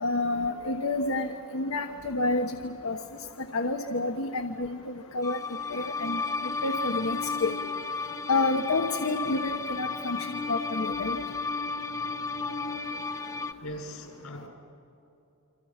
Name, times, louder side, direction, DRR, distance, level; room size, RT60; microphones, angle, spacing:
voice 1, 0.0-1.3 1.5-3.0 3.5-4.8 5.1-5.4 5.7-6.2 6.6-7.5 8.3-11.2, left 2 dB, 70° left, 4 dB, 1.2 m, -29 dB
sound 1, 5.2-13.5, left 4 dB, 15° left, 0.8 m, -33 dB
voice 2, 13.6-14.5, equal, 85° left, 1 dB, 6.1 m, -40 dB
29.5 x 25.5 x 5.9 m, 3.0 s
head